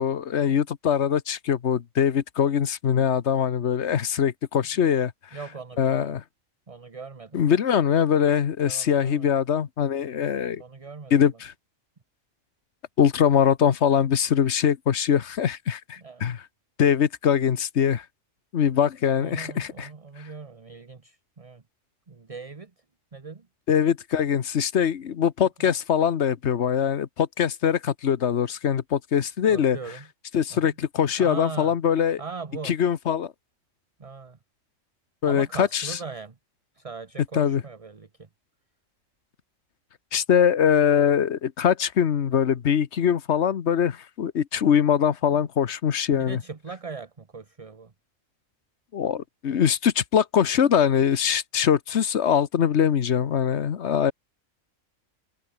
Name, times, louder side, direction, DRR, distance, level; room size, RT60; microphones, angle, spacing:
voice 1, 0.0-5.1 5.8-6.2 7.3-10.6 11.1-11.5 13.0-16.4 16.8-18.0 18.5-19.9 23.7-29.8 30.3-32.2 32.6-33.3 35.2-36.0 37.3-37.6 40.1-46.4 48.9-54.1, left 8 dB, 60° left, 1.3 m, -22 dB
voice 2, 5.3-6.2 6.7-7.6 8.6-9.3 10.6-11.3 16.0-16.3 19.2-21.6 22.1-22.7 23.1-23.5 29.5-30.1 30.5-30.7 31.2-31.7 32.2-32.7 34.0-34.4 35.2-36.4 36.8-38.3 45.3-45.5 46.1-47.9, right 4 dB, 30° right, 1.1 m, -40 dB
omnidirectional pair, 1.4 m